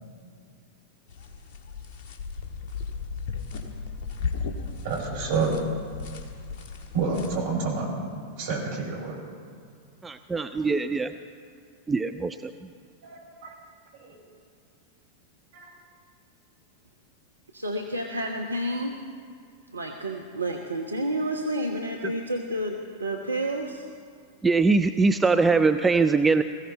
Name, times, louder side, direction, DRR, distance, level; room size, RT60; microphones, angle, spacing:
sound 1, 1.1-7.4, left 5 dB, 45° left, 1.6 m, -35 dB
voice 1, 4.8-5.5 6.9-7.9 8.4-9.2 13.0-13.5 14.0-14.1 15.5-15.7, right 4 dB, 55° right, -2 dB, 5.4 m, -28 dB
voice 2, 10.0-11.1 11.9-12.5 24.4-26.4, right 4 dB, 10° right, 9 dB, 0.5 m, -22 dB
voice 3, 17.5-19.0 19.7-23.8, right 1 dB, 80° right, 1 dB, 1.0 m, -30 dB
21.5 x 15.0 x 4.3 m, 2.2 s
figure-of-eight pair, 90°, 0 cm